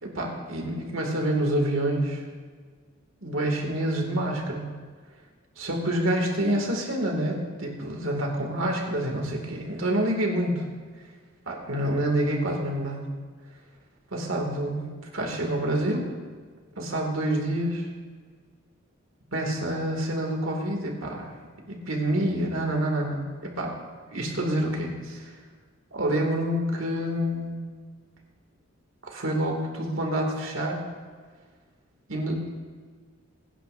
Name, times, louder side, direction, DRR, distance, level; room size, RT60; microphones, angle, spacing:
voice 1, 0.0-2.2 3.2-4.7 5.6-10.6 11.5-13.1 14.1-14.8 15.1-16.1 16.8-17.9 19.3-21.3 21.7-23.7 24.1-25.3 25.9-27.6 29.0-30.8 32.1-32.5, right 1 dB, 80° right, 1 dB, 2.3 m, -27 dB
22.0 x 10.0 x 2.6 m, 1.5 s
head